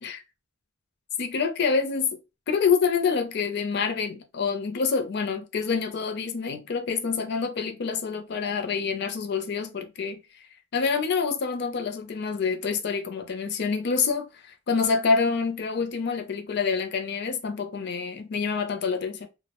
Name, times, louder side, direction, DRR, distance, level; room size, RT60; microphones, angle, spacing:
voice 1, 1.2-2.2 2.5-10.2 10.7-19.3, left 5 dB, 60° left, 0.5 m, -27 dB
2.4 x 2.0 x 2.8 m
head